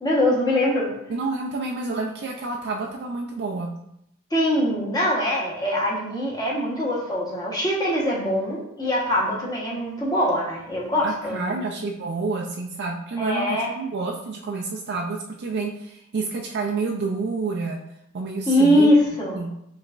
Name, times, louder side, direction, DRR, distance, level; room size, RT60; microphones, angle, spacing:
voice 1, 0.0-0.9 4.3-11.6 13.2-13.7 18.5-19.4, left 1 dB, 20° left, -5 dB, 1.1 m, -22 dB
voice 2, 1.1-3.8 11.0-17.8 18.1-18.9 19.4-19.5, right 3 dB, 50° right, 0 dB, 0.4 m, -29 dB
5.2 x 3.2 x 2.5 m, 0.78 s
head